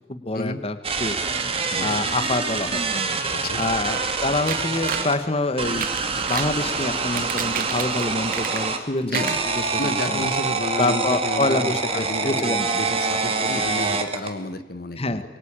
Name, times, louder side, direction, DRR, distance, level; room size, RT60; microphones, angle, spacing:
voice 1, 0.1-1.2 1.8-3.0 3.6-5.9 6.2-9.8 10.1-10.3 10.8-12.7 15.0-15.2, left 2 dB, 35° left, 11 dB, 1.3 m, -26 dB
sound 1, 0.8-5.2 5.6-8.8 9.2-14.3, right 4 dB, 35° right, 2.2 m, -25 dB
voice 2, 3.3-3.6 9.0-9.4 9.8-15.2, left 2 dB, 55° left, 11 dB, 1.3 m, -31 dB
sound 2, 4.5-5.1 5.7-6.6 7.0-8.8 9.1-10.0 10.4-10.5 10.8-10.9, right 8 dB, 50° right, 1.2 m, -32 dB
23.5 x 23.0 x 8.9 m, 1.0 s
head